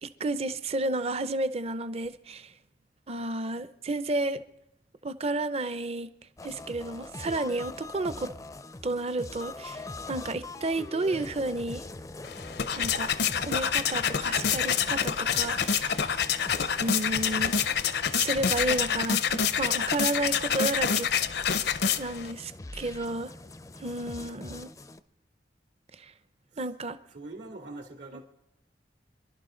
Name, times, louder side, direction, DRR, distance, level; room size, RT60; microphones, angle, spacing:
voice 1, 0.0-2.5 3.1-4.4 5.0-6.1 6.4-8.3 8.8-11.8 12.7-16.1 16.8-17.5 18.1-21.1 21.4-21.6 22.0-23.3 23.8-24.7 25.9-26.1 26.6-27.0, right 2 dB, 35° right, 0.6 m, -32 dB
sound 1, 6.4-25.0, left 2 dB, 20° left, 0.5 m, -43 dB
sound 2, 12.2-22.3, left 7 dB, 65° left, 0.6 m, -27 dB
voice 2, 27.1-28.3, right 2 dB, 80° right, 2.8 m, -43 dB
25.5 x 11.5 x 3.8 m
head